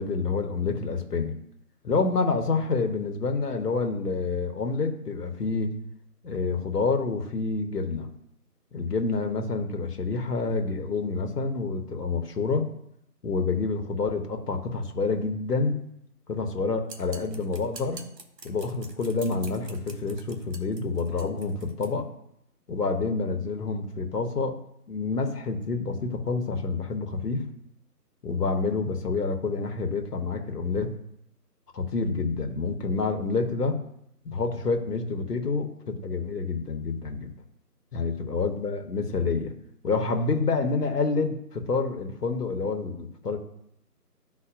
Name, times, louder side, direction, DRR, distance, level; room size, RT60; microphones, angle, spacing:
voice 1, 0.0-1.4 1.8-5.7 6.2-8.1 8.7-12.7 13.2-15.8 16.3-18.0 18.4-22.1 22.7-24.6 24.9-27.5 28.2-31.0 31.7-33.8 34.2-37.3 37.9-39.5 39.8-43.4, left 4 dB, 70° left, 4 dB, 1.1 m, -28 dB
sound 1, 16.9-21.9, right 4 dB, 85° right, 1.0 m, -46 dB
9.8 x 4.0 x 2.5 m, 0.76 s
figure-of-eight pair, 170°, 48 cm